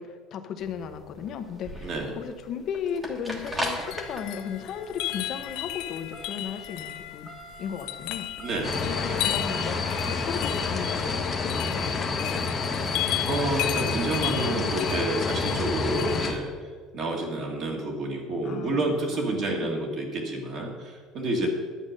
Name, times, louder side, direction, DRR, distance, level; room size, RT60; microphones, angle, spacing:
voice 1, 0.0-7.3 7.6-8.3 8.8-12.8 18.4-19.7 21.4-21.5, left 7 dB, 40° left, 7 dB, 0.9 m, -36 dB
sound 1, 0.6-14.7, equal, 10° right, 1.4 m, -41 dB
sound 2, 3.3-16.4, left 17 dB, 70° left, 0.4 m, -35 dB
voice 2, 8.4-8.7 13.3-16.5 16.9-21.5, right 2 dB, 40° right, 0 dB, 1.8 m, -29 dB
sound 3, 8.6-16.3, left 4 dB, 20° left, 1.1 m, -29 dB
11.0 x 8.0 x 6.5 m, 1.5 s
cardioid pair, 175°, 0 cm